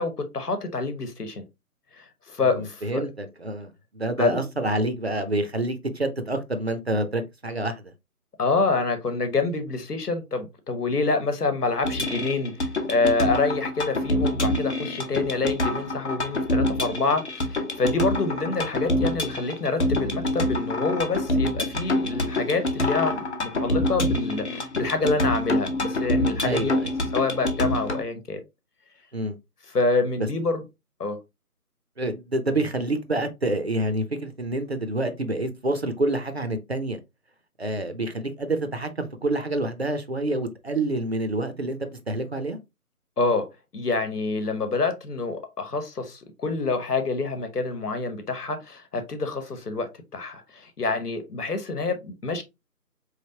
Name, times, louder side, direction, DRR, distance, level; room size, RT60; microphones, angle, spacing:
voice 1, 0.0-1.4 2.0-3.0 4.2-4.4 8.4-12.5 12.9-26.8 27.1-28.4 29.7-30.6 31.0-31.2 43.2-43.5 43.7-52.4, left 3 dB, 85° left, 1.2 m, -27 dB
voice 2, 2.4-7.9 26.4-26.9 29.1-29.4 30.2-30.3 32.0-37.0 37.6-42.6, right 1 dB, 45° right, 0.5 m, -27 dB
sound 1, 11.8-28.0, left 1 dB, 45° left, 0.8 m, -26 dB
4.0 x 3.2 x 2.7 m
figure-of-eight pair, 160°, 45 cm